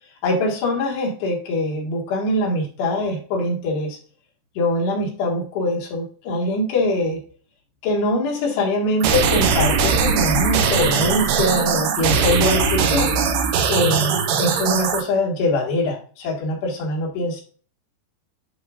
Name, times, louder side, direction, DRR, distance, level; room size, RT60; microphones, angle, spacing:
voice 1, 0.2-4.0 4.6-7.2 7.8-13.1 13.7-17.4, left 1 dB, 75° left, -1 dB, 3.7 m, -23 dB
sound 1, 9.0-15.0, right 5 dB, 75° right, 2.8 m, -20 dB
11.0 x 3.9 x 2.4 m, 0.42 s
omnidirectional pair, 5.0 m